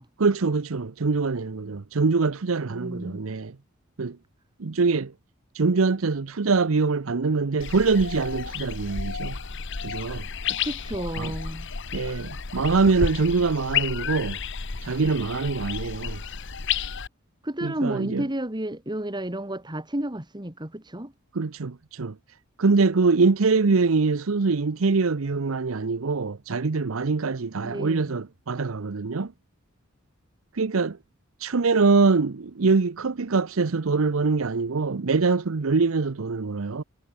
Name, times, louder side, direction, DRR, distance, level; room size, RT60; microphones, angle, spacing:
voice 1, 0.2-3.6 4.0-4.2 4.6-5.1 5.5-9.4 9.8-10.3 11.2-11.3 11.9-14.4 14.8-16.2 17.6-18.3 21.3-22.2 22.6-29.3 30.5-31.0 31.4-36.8, right 4 dB, 85° right, 0.7 m, -24 dB
voice 2, 2.7-3.2 10.5-11.7 17.4-21.1 23.7-23.8 27.6-28.2, right 1 dB, 20° right, 2.8 m, -32 dB
sound 1, 7.6-17.1, left 6 dB, 60° left, 1.3 m, -32 dB
head